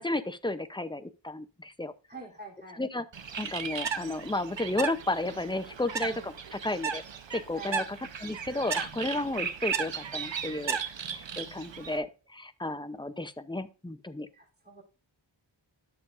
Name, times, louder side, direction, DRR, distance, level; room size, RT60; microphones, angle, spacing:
voice 1, 0.0-1.9 2.7-3.0 3.4-7.0 7.3-10.8 11.1-14.3, left 2 dB, 10° left, 11 dB, 0.6 m, -33 dB
voice 2, 2.1-2.8 7.5-7.8 14.3-14.8, right 3 dB, 20° right, -3 dB, 3.1 m, -45 dB
Bird, 3.1-12.0, right 6 dB, 70° right, 0.9 m, -35 dB
11.0 x 6.9 x 2.5 m, 0.32 s
wide cardioid pair, 55°, 47 cm